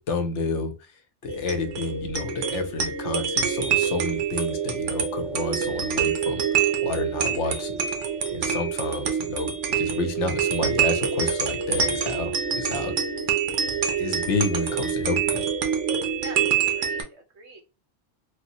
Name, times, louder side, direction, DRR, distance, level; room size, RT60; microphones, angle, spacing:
voice 1, 0.1-0.7 1.2-6.4 6.8-7.8 8.3-12.9 14.0-15.4, left 3 dB, 75° left, 7 dB, 1.0 m, -30 dB
sound 1, 1.3-17.0, right 7 dB, 80° right, 1.0 m, -26 dB
voice 2, 16.2-17.1 17.3-17.6, right 3 dB, 65° right, 2 dB, 1.3 m, -43 dB
3.2 x 2.1 x 2.8 m, 0.31 s
omnidirectional pair, 1.3 m